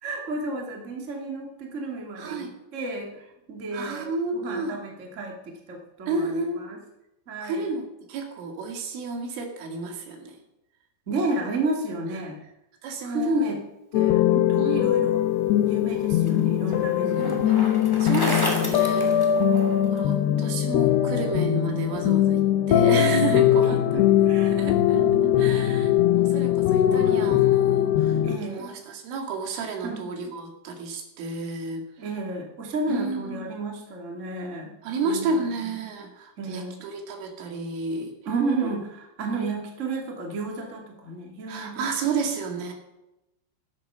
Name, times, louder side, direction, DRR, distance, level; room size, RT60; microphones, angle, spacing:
voice 1, 0.0-6.8 7.3-7.6 11.0-12.4 13.0-13.6 13.9-15.2 15.7-17.4 19.5-19.9 23.6-24.6 24.9-25.7 26.8-27.8 28.2-28.7 29.8-30.1 32.0-34.7 35.0-35.5 36.4-36.8 38.2-41.9, right 2 dB, 30° right, 1 dB, 1.3 m, -32 dB
voice 2, 2.2-2.5 3.7-4.7 6.1-6.7 7.4-10.4 12.8-13.5 14.6-14.9 17.2-17.6 18.0-19.3 19.9-25.0 25.4-28.2 28.5-31.9 32.9-33.4 34.8-38.1 41.5-42.7, right 4 dB, 75° right, 3 dB, 4.6 m, -31 dB
sound 1, 13.9-28.4, left 11 dB, 85° left, 2.4 m, -21 dB
Bicycle, 15.6-20.0, equal, 10° left, 1.1 m, -32 dB
15.0 x 13.0 x 5.7 m, 0.92 s
omnidirectional pair, 5.9 m